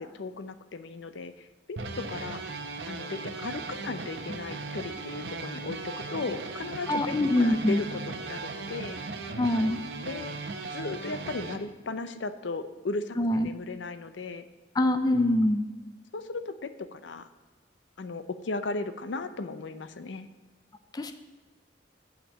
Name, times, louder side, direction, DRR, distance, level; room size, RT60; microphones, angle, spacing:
voice 1, 0.0-2.4 2.9-9.0 10.1-10.4 10.6-14.4 16.1-17.3 18.0-20.3, left 3 dB, 75° left, 11 dB, 0.6 m, -36 dB
sound 1, 1.8-11.6, right 3 dB, 70° right, 0.8 m, -37 dB
voice 2, 6.9-7.8 9.4-9.8 13.2-13.5 14.8-15.6 20.9-21.1, left 1 dB, 20° left, 8 dB, 0.4 m, -24 dB
8.9 x 5.1 x 7.1 m, 1.3 s
head